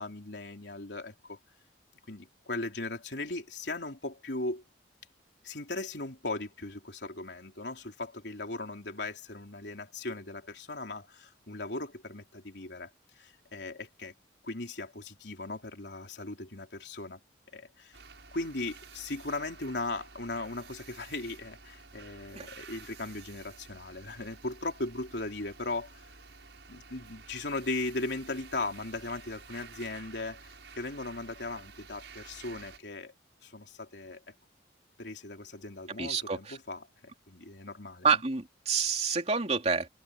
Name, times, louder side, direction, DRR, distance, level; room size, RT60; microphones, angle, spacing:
voice 1, 0.0-1.4 2.1-4.6 5.4-12.9 13.2-14.1 14.4-17.2 17.5-18.0 18.3-26.0 26.7-33.1 33.4-34.2 35.0-38.1, left 2 dB, 70° left, 3.7 m, -38 dB
sound 1, 17.9-32.8, right 5 dB, 80° right, 6.7 m, -51 dB
voice 2, 36.0-36.6 38.0-39.9, right 5 dB, 35° right, 3.1 m, -28 dB
head